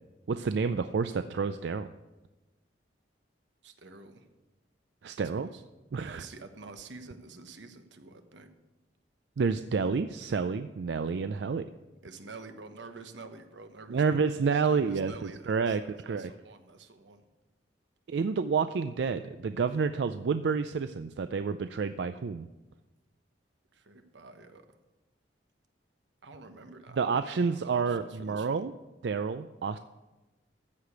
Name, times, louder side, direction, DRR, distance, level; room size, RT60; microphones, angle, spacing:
voice 1, 0.3-1.9 5.0-5.5 5.9-6.2 9.4-11.7 13.9-15.8 16.1-16.3 18.1-22.5 27.0-28.7 29.0-29.8, right 5 dB, 65° right, 11 dB, 0.4 m, -29 dB
voice 2, 3.6-4.3 5.2-5.6 6.1-8.5 12.0-14.3 14.6-17.2 23.7-24.7 26.2-28.6, right 3 dB, 90° right, 7 dB, 1.1 m, -48 dB
14.0 x 5.0 x 8.1 m, 1.1 s
head